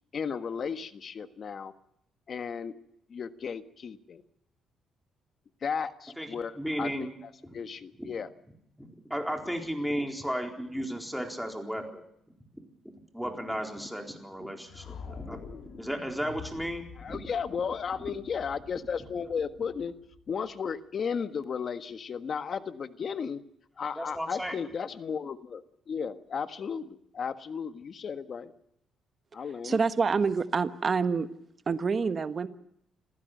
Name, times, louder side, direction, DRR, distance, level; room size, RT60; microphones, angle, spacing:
voice 1, 0.1-1.7 2.3-2.7 3.1-4.2 5.6-8.3 17.0-19.9 20.3-23.4 23.8-28.5 29.3-29.8, left 6 dB, 50° left, 10 dB, 1.5 m, -34 dB
voice 2, 6.2-7.1 8.0-8.1 8.8-12.0 13.1-15.4 15.7-17.2 24.0-24.6, equal, ahead, 2 dB, 4.2 m, -34 dB
sound 1, 14.7-20.7, left 6 dB, 70° left, 4.6 m, -47 dB
voice 3, 29.6-31.3 31.7-32.5, right 5 dB, 40° right, 11 dB, 1.3 m, -27 dB
27.0 x 15.5 x 6.7 m, 0.76 s
cardioid pair, 90°, 0 cm